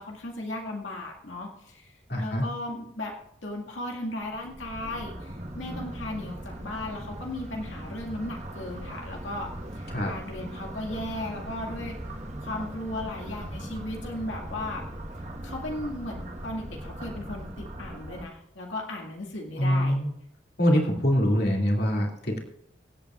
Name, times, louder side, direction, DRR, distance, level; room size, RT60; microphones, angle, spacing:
voice 1, 0.0-12.0 12.4-14.8 15.4-20.0, left 1 dB, 85° left, -1 dB, 2.1 m, -36 dB
voice 2, 2.1-2.4 9.9-10.1 19.6-20.1 20.6-22.4, equal, 55° left, -1 dB, 2.5 m, -24 dB
sound 1, 4.2-18.3, right 1 dB, 35° right, 1.4 m, -39 dB
25.0 x 8.5 x 2.5 m, 0.75 s
head